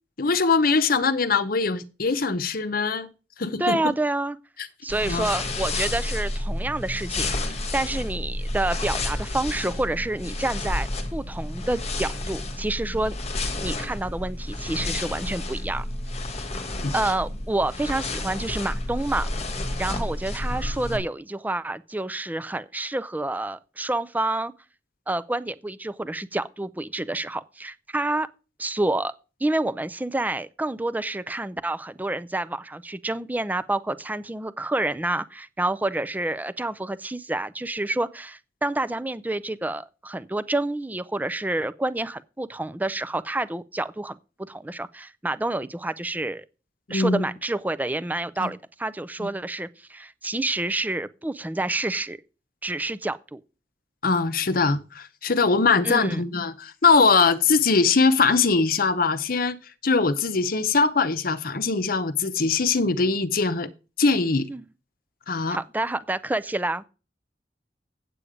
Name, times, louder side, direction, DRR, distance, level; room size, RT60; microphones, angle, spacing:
voice 1, 0.2-3.1 3.4-3.8 5.0-5.3 16.7-16.9 46.9-47.3 48.4-48.5 49.2-49.3 54.0-59.6 59.8-63.7 64.0-64.5 65.3-65.6, left 4 dB, 55° left, 0.8 m, -22 dB
voice 2, 3.6-4.4 4.8-7.3 7.7-15.8 16.9-19.3 19.8-24.5 25.1-28.3 28.6-29.1 29.4-44.2 44.5-46.4 46.9-52.2 52.6-53.4 55.8-56.2 64.5-64.6 65.5-66.8, right 2 dB, 10° right, 0.4 m, -28 dB
sound 1, 4.9-21.0, left 2 dB, 40° left, 1.5 m, -30 dB
8.4 x 8.4 x 5.0 m
head